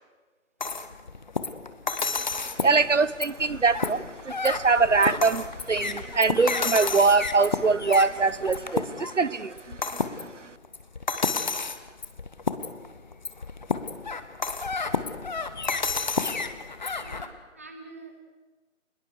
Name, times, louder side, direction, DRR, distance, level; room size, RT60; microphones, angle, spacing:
sound 1, 0.6-17.3, left 4 dB, 35° left, 1.2 m, -31 dB
voice 1, 2.0-10.6, right 4 dB, 65° right, 0.9 m, -24 dB
voice 2, 17.0-18.2, right 3 dB, 10° right, 0.8 m, -46 dB
27.0 x 21.0 x 6.5 m
figure-of-eight pair, 155°, 40 cm